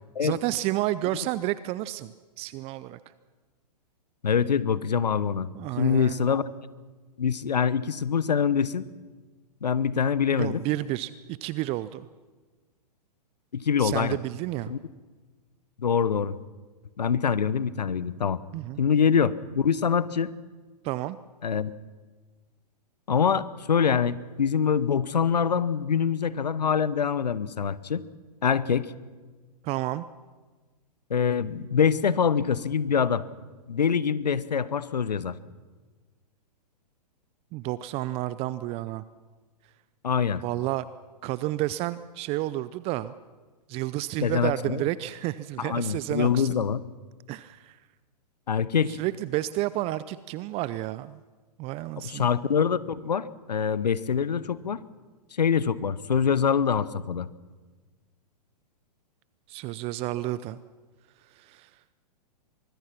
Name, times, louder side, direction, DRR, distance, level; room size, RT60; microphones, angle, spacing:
voice 1, 0.2-2.1 2.4-3.0 5.5-6.2 10.4-12.1 13.8-14.7 18.5-18.8 20.8-21.2 29.6-30.0 37.5-39.0 40.4-40.9 41.2-43.1 43.7-46.5 47.3-47.8 48.9-51.2 51.6-52.3 59.5-60.6 61.3-61.7, right 16 dB, 30° right, 16 dB, 0.5 m, -30 dB
voice 2, 4.2-5.5 5.8-6.4 7.2-8.8 9.6-10.6 13.5-14.2 14.7-14.8 15.8-16.4 17.0-18.4 18.8-20.3 21.4-21.7 23.1-28.0 28.4-28.9 31.1-33.3 33.7-35.3 40.0-40.4 44.2-44.8 45.6-46.8 48.5-49.0 52.0-54.8 55.3-57.3, left 7 dB, 80° left, 18 dB, 1.0 m, -24 dB
24.5 x 21.0 x 5.9 m, 1.3 s
hypercardioid pair, 115°, 21 cm